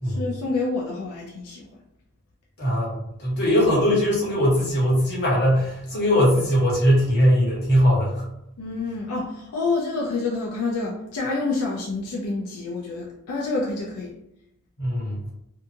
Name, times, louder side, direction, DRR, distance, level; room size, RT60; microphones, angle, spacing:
voice 1, 0.0-1.6 8.6-14.2, left 3 dB, 80° left, -2 dB, 0.4 m, -28 dB
voice 2, 2.6-8.2 14.8-15.2, equal, 50° left, -5 dB, 1.0 m, -20 dB
2.7 x 2.4 x 2.5 m, 0.82 s
head